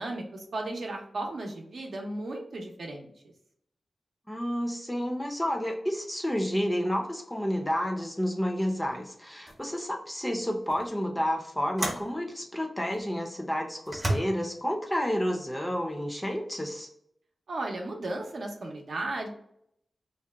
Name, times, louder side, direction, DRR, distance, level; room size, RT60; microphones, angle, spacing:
voice 1, 0.0-3.3 17.5-19.3, right 2 dB, 70° right, 1 dB, 0.6 m, -35 dB
voice 2, 4.3-16.9, equal, 10° left, 3 dB, 0.5 m, -30 dB
sound 1, 8.8-9.0 9.5-9.7 10.7-10.8 11.8-12.1 12.9-13.0 13.8-14.2, right 1 dB, 30° right, 0.7 m, -31 dB
2.7 x 2.1 x 3.4 m, 0.72 s
wide cardioid pair, 130°, 0 cm